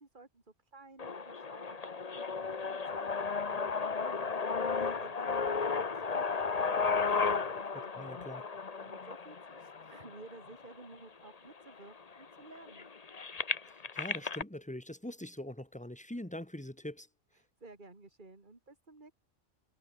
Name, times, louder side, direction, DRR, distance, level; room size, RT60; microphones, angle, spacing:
voice 1, 0.0-7.0 7.2-7.9 8.8-12.9 17.3-19.1, right 3 dB, 40° right, 3.0 m, -54 dB
sound 1, 1.0-10.9 11.6-11.7 12.0-14.4, left 5 dB, 35° left, 1.1 m, -34 dB
voice 2, 8.0-8.4 13.7-17.1, left 1 dB, 5° left, 2.1 m, -43 dB
omnidirectional pair, 1.3 m